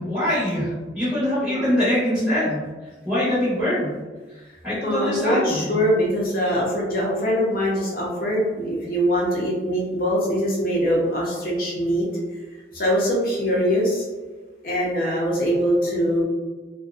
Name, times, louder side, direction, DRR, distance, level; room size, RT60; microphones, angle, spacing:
voice 1, 0.0-2.6 3.0-3.9 4.6-5.7, left 1 dB, 10° right, -12 dB, 0.9 m, -23 dB
voice 2, 4.8-12.1 12.7-14.0 14.6-16.2, equal, 50° left, -4 dB, 0.7 m, -22 dB
2.6 x 2.2 x 2.4 m, 1.2 s
head